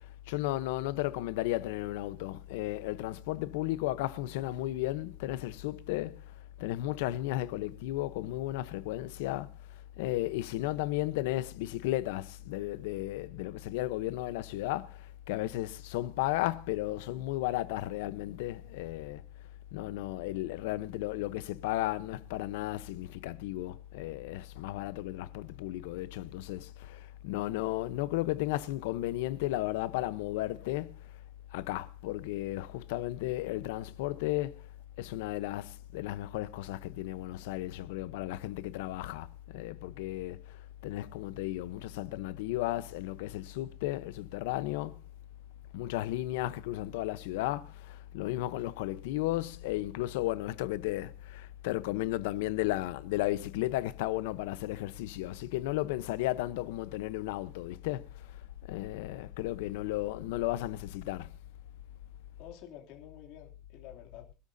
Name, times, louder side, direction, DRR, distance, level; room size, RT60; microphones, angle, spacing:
voice 1, 0.3-6.2 6.6-9.5 10.0-19.2 19.7-31.0 31.5-34.6 35.0-39.3 39.5-40.4 40.8-45.0 45.7-58.3 58.7-61.3, left 16 dB, 75° left, 0.9 m, -34 dB
voice 2, 60.1-60.5 62.4-64.3, left 11 dB, 50° left, 2.8 m, -50 dB
25.0 x 12.5 x 2.7 m
cardioid pair, 175°, 0 cm